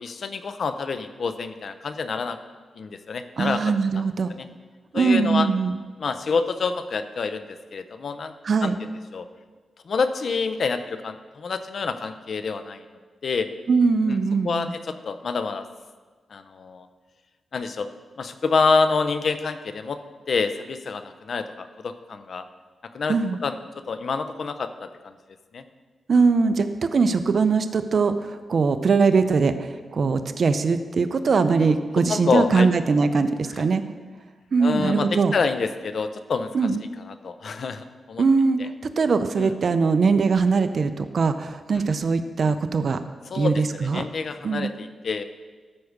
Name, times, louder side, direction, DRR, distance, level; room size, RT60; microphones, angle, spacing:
voice 1, 0.0-2.4 2.8-3.6 3.9-4.0 4.3-4.5 4.9-5.5 6.0-7.5 7.7-8.3 8.6-9.2 9.9-12.8 13.2-13.5 14.1-14.2 14.4-15.7 16.3-16.9 17.5-17.9 18.2-20.0 20.3-22.5 22.9-23.2 23.4-23.6 23.9-25.1 25.5-25.6 31.6-31.7 32.1-32.7 33.6-33.7 34.6-36.5 37.1-38.2 38.6-38.7 39.4-39.5 41.7-41.8 43.3-45.2, left 4 dB, 60° left, 10 dB, 0.7 m, -27 dB
voice 2, 3.4-4.3 4.9-5.8 8.4-8.7 13.7-14.7 23.1-23.4 26.1-33.8 34.5-35.3 36.5-36.8 38.2-43.0 43.3-44.0 44.4-44.7, right 4 dB, 55° right, 9 dB, 0.6 m, -21 dB
13.0 x 4.8 x 6.5 m, 1.4 s
cardioid pair, 95°, 0 cm